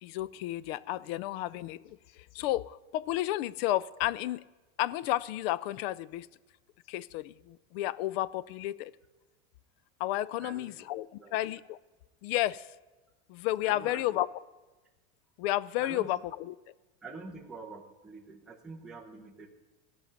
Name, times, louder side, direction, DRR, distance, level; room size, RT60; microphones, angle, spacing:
voice 1, 0.0-4.4 4.8-6.3 6.9-8.9 10.0-11.8 12.2-12.7 13.3-14.3 15.4-16.5, left 15 dB, 60° left, 0.4 m, -32 dB
voice 2, 10.4-10.9 11.2-11.3 13.6-14.1 15.8-16.1 17.0-19.5, right 3 dB, ahead, 0.8 m, -46 dB
15.5 x 5.5 x 9.1 m
supercardioid pair, 165°, 36 cm